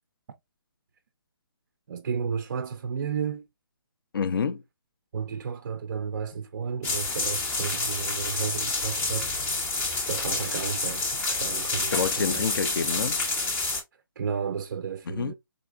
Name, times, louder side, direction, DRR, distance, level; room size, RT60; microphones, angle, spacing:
voice 1, 1.9-3.5 5.1-9.3 10.0-12.5 14.2-15.3, right 6 dB, 50° right, 0.3 m, -33 dB
voice 2, 4.1-4.6 10.3-10.4 11.9-13.2 15.1-15.3, left 6 dB, 70° left, 0.4 m, -28 dB
sound 1, 6.8-13.8, left 3 dB, 15° left, 0.5 m, -28 dB
3.8 x 2.3 x 2.2 m
figure-of-eight pair, 145°, 12 cm